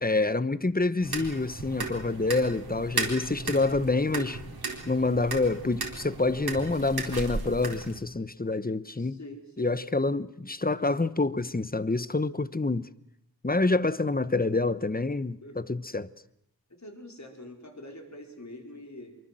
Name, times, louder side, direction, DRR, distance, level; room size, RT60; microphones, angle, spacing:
voice 1, 0.0-4.4 4.9-9.2 9.6-12.9 13.4-16.1, left 3 dB, 25° left, 1.0 m, -27 dB
sound 1, 1.0-8.0, right 3 dB, 85° right, 4.1 m, -35 dB
voice 2, 8.9-9.7 15.4-15.6 16.7-19.2, left 1 dB, 50° left, 4.9 m, -45 dB
25.0 x 23.5 x 7.7 m
wide cardioid pair, 65°, 37 cm